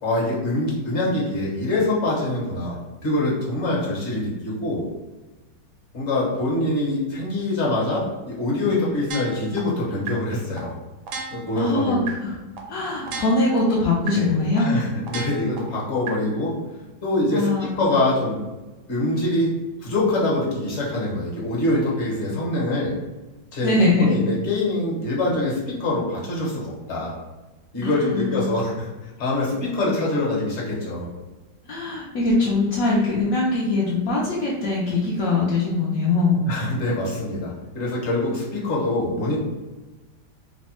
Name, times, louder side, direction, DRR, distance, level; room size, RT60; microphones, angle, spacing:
voice 1, 0.0-4.8 5.9-10.7 11.3-12.0 14.1-16.5 17.0-18.4 18.9-19.5 19.8-22.9 23.5-27.1 27.7-31.1 36.4-39.4, left 2 dB, 45° left, -4 dB, 1.1 m, -24 dB
sound 1, 9.1-9.6 10.1-10.2 10.6-10.7 11.1-11.6 12.1-12.2 12.6-12.7 13.1-13.6 14.1-14.2 14.6-14.7 15.1-15.6 16.1-16.2, right 5 dB, 75° right, 1.2 m, -32 dB
voice 2, 11.5-12.4 12.7-14.7 17.3-17.7 23.6-24.1 27.8-28.4 31.6-36.4, left 2 dB, 65° left, -6 dB, 0.8 m, -22 dB
3.1 x 2.1 x 4.2 m, 1.1 s
omnidirectional pair, 2.0 m